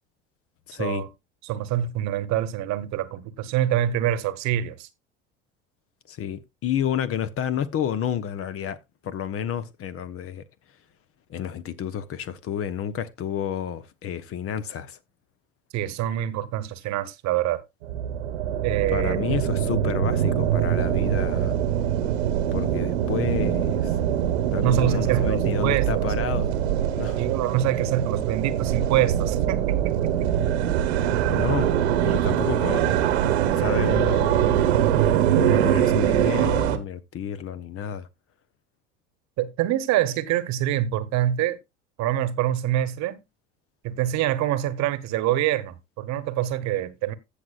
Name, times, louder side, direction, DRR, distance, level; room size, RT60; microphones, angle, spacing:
voice 1, 0.7-1.1 6.1-8.8 9.0-10.4 11.3-15.0 18.9-21.6 22.5-24.0 24.5-26.5 27.0-27.2 31.2-33.0 33.6-34.6 35.3-38.1, left 9 dB, 45° left, 1.0 m, -30 dB
voice 2, 1.4-4.9 15.7-17.6 18.6-19.2 24.6-26.0 27.2-30.3 39.4-41.6 42.0-43.2 43.8-47.1, right 12 dB, 55° right, 1.2 m, -25 dB
sound 1, 17.8-36.8, right 10 dB, 80° right, 1.2 m, -23 dB
15.5 x 6.6 x 2.4 m
hypercardioid pair, 75°, 32 cm